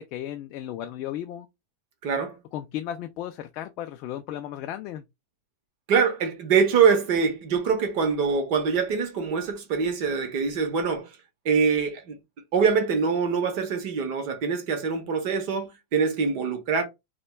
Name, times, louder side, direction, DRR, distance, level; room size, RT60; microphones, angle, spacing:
voice 1, 0.0-1.5 2.5-5.0, left 11 dB, 40° left, 0.4 m, -35 dB
voice 2, 2.0-2.4 5.9-11.1 11.4-12.2 12.5-16.8, right 6 dB, 45° right, 0.8 m, -24 dB
4.2 x 2.1 x 2.2 m
supercardioid pair, 160°, 0 cm